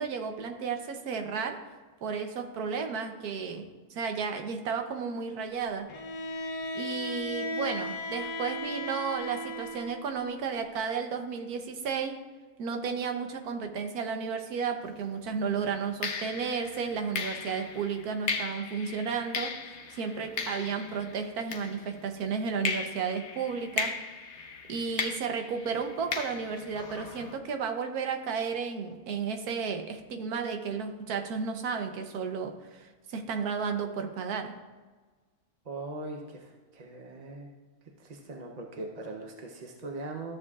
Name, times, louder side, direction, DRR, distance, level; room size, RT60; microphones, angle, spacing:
voice 1, 0.0-1.6 2.0-5.9 6.4-6.5 6.7-12.2 12.6-19.5 19.9-23.9 24.7-34.5, right 6 dB, 75° right, 5 dB, 1.4 m, -33 dB
Bowed string instrument, 5.9-10.2, left 1 dB, 85° left, 1.2 m, -36 dB
sound 1, 14.9-15.1 16.0-22.2 22.6-27.4, left 5 dB, 55° left, 0.9 m, -37 dB
voice 2, 35.6-37.5 38.0-40.4, right 2 dB, 40° right, 1 dB, 0.6 m, -40 dB
13.5 x 7.5 x 2.4 m, 1.3 s
omnidirectional pair, 1.6 m